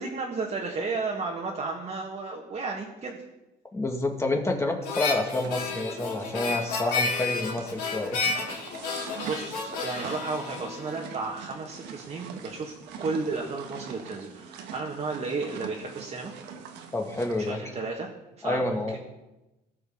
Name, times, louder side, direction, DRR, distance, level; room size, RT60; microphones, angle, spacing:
voice 1, 0.0-3.2 9.2-16.3 17.4-18.1 18.4-19.0, right 4 dB, 40° right, -2 dB, 1.6 m, -33 dB
voice 2, 3.7-8.2 16.9-17.6 18.4-19.0, left 2 dB, 15° left, 2 dB, 1.9 m, -28 dB
Harmonica, 4.8-11.3, left 4 dB, 85° left, 4.1 m, -31 dB
sound 1, 5.4-17.5, right 7 dB, 90° right, 1.3 m, -44 dB
18.0 x 6.7 x 3.8 m, 0.99 s
cardioid pair, 110°, 17 cm